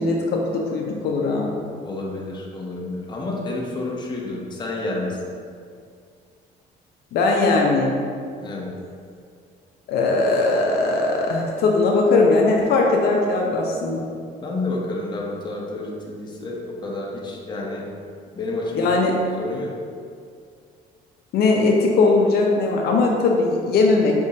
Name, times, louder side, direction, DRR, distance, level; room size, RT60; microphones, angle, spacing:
voice 1, 0.0-1.5 7.1-8.0 9.9-14.0 18.7-19.1 21.3-24.2, left 3 dB, 70° left, -1 dB, 0.6 m, -19 dB
voice 2, 1.8-5.2 8.4-8.7 14.4-17.8 18.3-18.9 19.4-19.7, left 2 dB, 25° left, -2 dB, 0.8 m, -29 dB
5.2 x 3.5 x 2.7 m, 2.2 s
cardioid pair, 110°, 17 cm